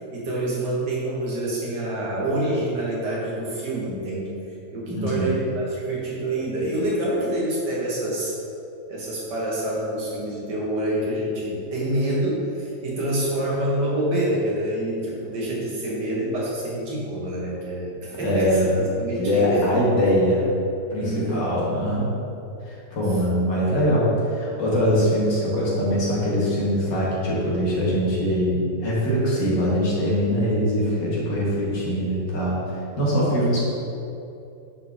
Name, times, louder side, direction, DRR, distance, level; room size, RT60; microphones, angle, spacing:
voice 1, 0.1-4.4 4.7-8.3 8.9-18.7 19.0-19.7 21.0-21.5 23.1-23.2 33.4-33.6, right 1 dB, 75° right, -5 dB, 2.2 m, -27 dB
voice 2, 4.9-5.3 18.2-18.7 19.2-20.5 20.9-22.1 22.6-32.6 33.0-33.6, equal, 90° left, -6 dB, 2.4 m, -22 dB
9.9 x 4.5 x 3.6 m, 2.8 s
omnidirectional pair, 1.9 m